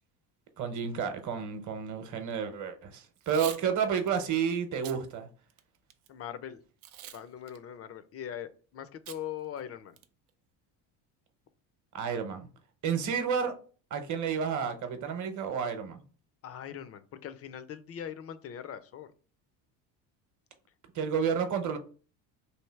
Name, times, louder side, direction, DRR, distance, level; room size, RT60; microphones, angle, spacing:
voice 1, 0.6-5.3 11.9-12.5 12.8-13.5 13.9-16.0 20.9-21.8, right 7 dB, 45° right, 0.8 m, -31 dB
Packing tape duct tape / Tearing, 3.2-3.6 4.1-4.2 4.7-5.0 5.5-6.1 6.8-7.2 7.5-7.6 9.1-9.2 9.6-9.7 10.0-10.3, right 12 dB, 90° right, 0.6 m, -43 dB
voice 2, 6.1-6.6 7.1-10.0 16.4-19.1, left 9 dB, 35° left, 0.4 m, -41 dB
3.2 x 2.7 x 4.5 m
cardioid pair, 115°, 43 cm